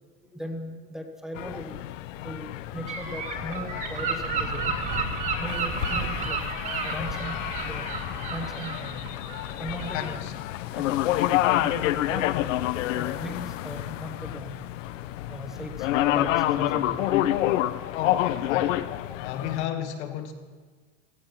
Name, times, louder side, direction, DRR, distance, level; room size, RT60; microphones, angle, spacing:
voice 1, 0.3-1.8 2.2-4.8 5.3-6.4 6.8-7.8 8.3-9.1 9.6-10.2 10.7-11.3 11.6-12.5 12.9-14.5 15.3-18.0 19.1-19.2, equal, ahead, 4 dB, 0.9 m, -38 dB
sound 1, 1.4-19.7, left 14 dB, 85° left, 0.8 m, -28 dB
Gull seagull / Wind, 2.9-10.1, right 5 dB, 20° right, 1.8 m, -32 dB
voice 2, 9.9-10.3 17.9-18.9 19.2-20.3, left 9 dB, 65° left, 6 dB, 2.0 m, -33 dB
16.0 x 15.5 x 5.8 m, 1.5 s
supercardioid pair, 175°, 37 cm